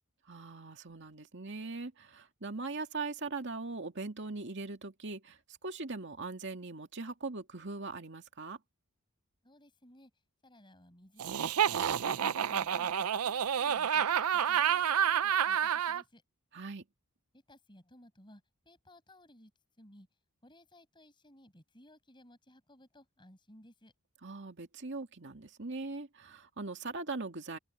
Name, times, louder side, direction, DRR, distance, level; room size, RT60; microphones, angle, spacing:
voice 1, 0.3-8.6 16.5-16.8 24.2-27.6, right 3 dB, 55° right, 2.3 m, -40 dB
voice 2, 9.4-10.1 10.4-16.2 17.3-19.5 19.8-20.1 20.4-23.9, left 1 dB, 20° left, 5.8 m, -59 dB
Laughter, 11.2-16.0, right 8 dB, 85° right, 0.5 m, -29 dB
open air
head